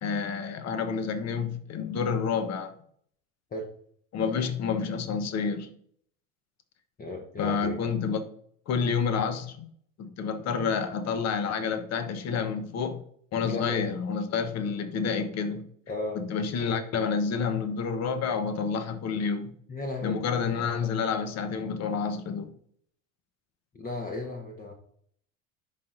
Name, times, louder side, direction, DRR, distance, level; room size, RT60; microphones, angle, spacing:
voice 1, 0.0-2.7 4.1-5.7 7.4-8.2 8.7-9.7 10.0-13.0 13.3-15.7 16.1-19.5 20.0-22.5, left 6 dB, 40° left, 1.1 m, -29 dB
voice 2, 7.0-7.8 13.4-13.9 15.9-16.2 19.7-20.2 23.7-24.7, left 3 dB, 20° left, 1.1 m, -34 dB
10.5 x 4.2 x 2.6 m
hypercardioid pair, 75°, 41 cm